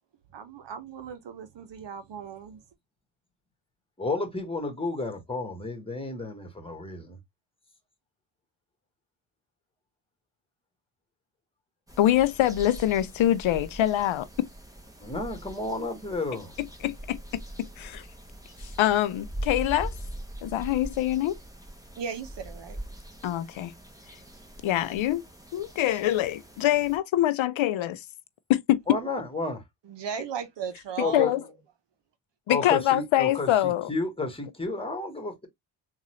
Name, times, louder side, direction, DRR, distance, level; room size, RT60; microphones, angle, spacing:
voice 1, 0.3-2.6 22.0-22.8 29.9-31.4, right 7 dB, 60° right, 1.0 m, -37 dB
voice 2, 4.0-7.2 15.0-16.5 28.9-29.6 31.0-31.3 32.5-35.5, left 3 dB, 10° left, 1.5 m, -31 dB
sound 1, 11.9-27.0, right 1 dB, 5° right, 1.1 m, -42 dB
voice 3, 12.0-14.3 16.8-17.2 17.8-18.1 18.8-19.9 20.4-21.4 23.2-23.7 24.6-25.2 25.5-28.0 28.5-28.8 31.1-31.4 32.5-33.9, left 13 dB, 70° left, 0.6 m, -24 dB
3.8 x 2.6 x 3.0 m
cardioid pair, 100°, 49 cm